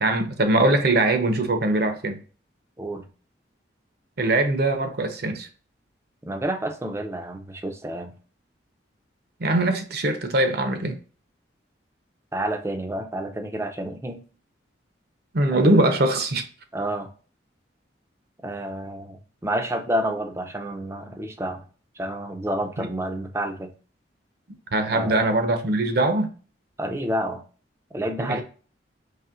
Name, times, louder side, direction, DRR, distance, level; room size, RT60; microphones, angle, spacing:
voice 1, 0.0-2.2 4.2-5.5 9.4-11.0 15.3-16.4 22.8-22.9 24.7-26.3 28.2-28.4, right 2 dB, 55° right, 7 dB, 0.7 m, -22 dB
voice 2, 2.8-3.1 6.2-8.1 12.3-14.2 15.5-15.7 16.7-17.1 18.4-21.7 22.0-23.7 24.9-25.2 26.8-27.4 27.9-28.4, right 1 dB, 15° right, 5 dB, 0.5 m, -29 dB
4.3 x 3.0 x 2.3 m, 0.39 s
head